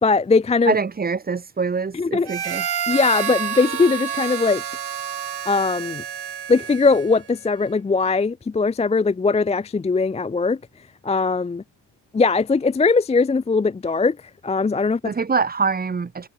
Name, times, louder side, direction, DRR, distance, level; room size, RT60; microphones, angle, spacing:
voice 1, 0.0-0.7 1.9-2.3 2.9-4.6 5.5-6.0 6.5-10.6 11.0-11.6 12.1-14.2 14.4-15.0, left 4 dB, 15° left, 0.3 m, -20 dB
voice 2, 0.7-2.7 15.0-16.3, right 5 dB, 20° right, 0.8 m, -24 dB
Harmonica, 2.2-7.3, right 8 dB, 55° right, 5.1 m, -29 dB
cardioid pair, 135°, 47 cm